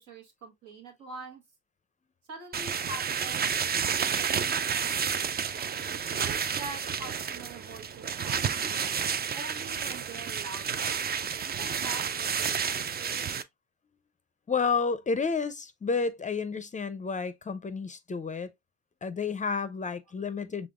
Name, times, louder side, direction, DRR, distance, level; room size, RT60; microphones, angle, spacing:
voice 1, 0.0-1.4 2.3-5.2 5.9-8.8 9.3-11.0 11.4-13.4, right 3 dB, 85° right, 1.6 m, -45 dB
sound 1, 2.5-13.4, right 7 dB, 35° right, 0.4 m, -30 dB
voice 2, 14.5-18.5 19.0-20.7, left 5 dB, 25° left, 0.4 m, -30 dB
5.1 x 3.5 x 2.3 m
cardioid pair, 90°, 30 cm